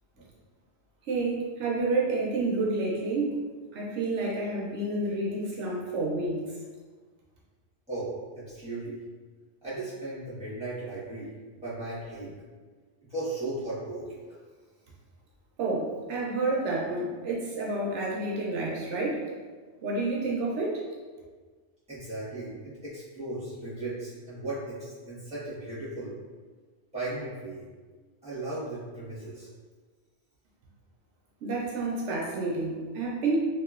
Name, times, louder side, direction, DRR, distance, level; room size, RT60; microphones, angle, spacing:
voice 1, 1.1-3.4 3.7-6.4 15.6-19.3 19.8-20.8 31.4-33.4, right 2 dB, 75° right, -3 dB, 0.9 m, -29 dB
voice 2, 7.9-9.0 9.6-11.3 11.6-12.3 13.1-14.2 21.9-26.1 26.9-27.6 28.2-29.5, right 2 dB, 5° right, -11 dB, 1.1 m, -36 dB
2.8 x 2.8 x 2.3 m, 1.4 s
omnidirectional pair, 1.2 m